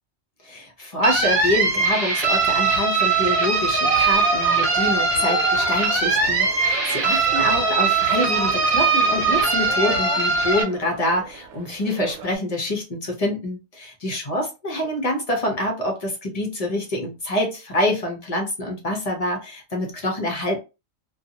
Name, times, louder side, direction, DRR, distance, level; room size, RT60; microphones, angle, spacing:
voice 1, 0.4-20.6, left 1 dB, 35° left, 1 dB, 0.7 m, -26 dB
sound 1, 1.0-10.6, right 4 dB, 50° right, 0.9 m, -21 dB
sound 2, 3.7-12.3, right 6 dB, 85° right, 1.0 m, -33 dB
2.6 x 2.3 x 2.8 m, 0.28 s
omnidirectional pair, 1.4 m